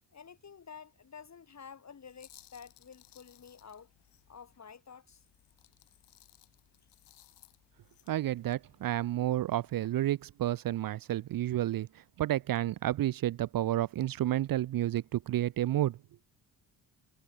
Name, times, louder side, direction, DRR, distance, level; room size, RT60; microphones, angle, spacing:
voice 1, 0.1-3.9 4.3-5.3, left 6 dB, 40° left, 3.4 m, -50 dB
sound 1, 2.0-4.6 5.1-9.9, left 12 dB, 80° left, 3.0 m, -62 dB
voice 2, 8.1-11.9 12.2-16.0, right 13 dB, 55° right, 0.6 m, -30 dB
cardioid pair, 110°, 41 cm